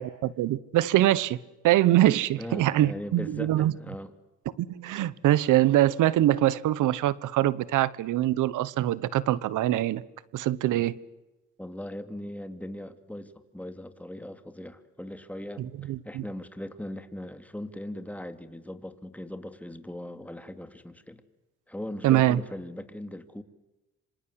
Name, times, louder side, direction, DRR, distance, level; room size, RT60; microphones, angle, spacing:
voice 1, 0.0-1.4 1.6-3.7 4.6-10.0 10.3-10.9 15.6-16.2 22.0-22.4, right 14 dB, 85° right, 1.2 m, -23 dB
voice 2, 2.4-4.1 10.6-10.9 11.6-21.2 21.7-23.4, left 1 dB, 5° left, 2.8 m, -39 dB
27.0 x 26.0 x 8.1 m
cardioid pair, 90°, 30 cm